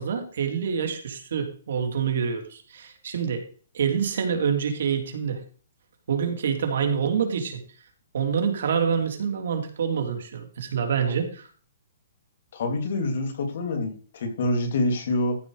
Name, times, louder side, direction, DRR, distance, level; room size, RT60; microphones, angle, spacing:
voice 1, 0.0-3.5 3.7-5.4 6.1-7.6 8.1-11.5, right 7 dB, 65° right, 5 dB, 3.0 m, -26 dB
voice 2, 12.5-15.4, left 2 dB, 55° left, 6 dB, 3.2 m, -26 dB
14.0 x 5.6 x 5.0 m, 0.41 s
hypercardioid pair, 170°, 0 cm